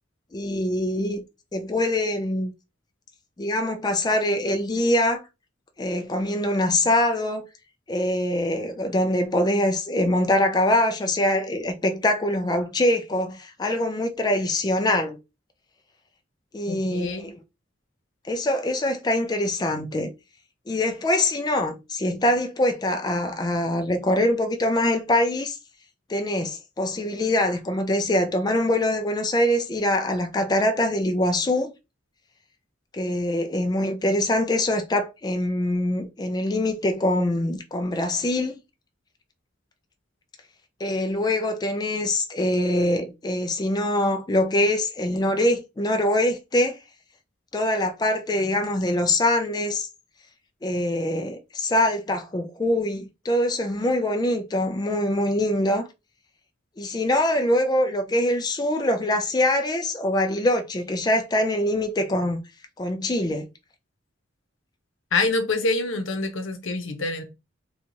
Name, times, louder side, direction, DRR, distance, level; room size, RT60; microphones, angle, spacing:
voice 1, 0.3-1.2 1.5-2.5 3.4-5.2 5.8-7.5 7.9-15.2 16.5-17.4 18.2-20.1 20.7-25.6 26.1-31.7 32.9-38.6 40.8-46.8 47.5-49.9 50.6-55.9 56.8-62.4 62.8-63.5, left 1 dB, 20° left, 0.4 m, -24 dB
voice 2, 16.7-17.3 65.1-67.2, left 3 dB, 80° left, 0.8 m, -26 dB
4.1 x 2.3 x 3.0 m
head